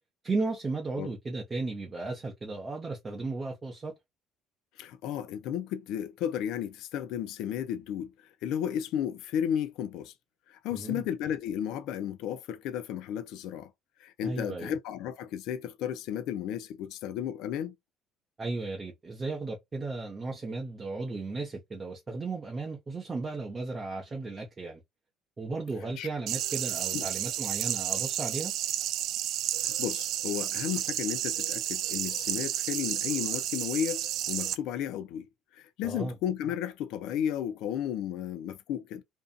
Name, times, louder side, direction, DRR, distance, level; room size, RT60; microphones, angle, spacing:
voice 1, 0.2-3.9 10.7-11.1 14.2-14.7 18.4-24.8 25.4-28.5 35.8-36.1, right 3 dB, 20° right, 0.6 m, -35 dB
voice 2, 4.8-10.1 10.5-13.7 14.0-17.7 26.0-26.1 26.9-27.0 29.6-35.3 35.5-39.0, left 10 dB, 70° left, 0.4 m, -33 dB
sound 1, 26.3-34.6, right 12 dB, 60° right, 0.3 m, -31 dB
2.6 x 2.5 x 2.3 m
cardioid pair, 135°, 0 cm